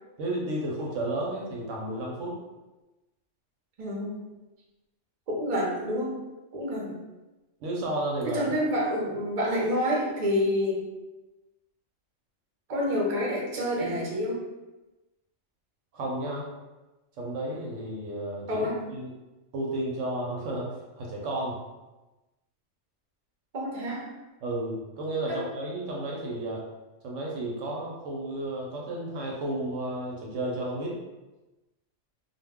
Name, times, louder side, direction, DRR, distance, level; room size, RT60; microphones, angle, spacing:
voice 1, 0.2-2.3 7.6-8.5 15.9-16.5 17.2-19.1 19.5-21.6 24.4-26.6 27.0-31.0, right 1 dB, 70° right, -2 dB, 0.9 m, -32 dB
voice 2, 3.8-4.2 5.3-6.2 6.5-6.9 8.3-10.9 12.7-14.4 18.5-18.8 23.5-24.1 25.3-25.4, equal, 40° right, -4 dB, 0.6 m, -28 dB
2.3 x 2.2 x 3.4 m, 1.1 s
omnidirectional pair, 1.4 m